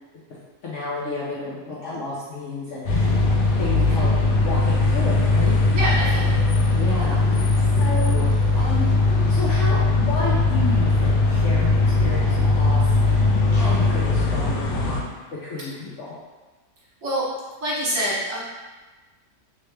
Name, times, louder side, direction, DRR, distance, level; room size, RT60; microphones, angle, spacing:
voice 1, 0.6-3.2 3.6-4.1 4.4-5.6 6.7-8.3 8.5-8.9 9.3-13.2 13.5-15.1 15.4-16.1, left 2 dB, 60° left, -7 dB, 0.8 m, -31 dB
sound 1, 2.9-15.0, left 3 dB, 85° left, 1.2 m, -19 dB
voice 2, 5.7-6.4 17.0-17.3 17.6-18.4, right 1 dB, 55° right, -7 dB, 1.4 m, -25 dB
3.2 x 3.0 x 3.2 m, 1.2 s
omnidirectional pair, 1.7 m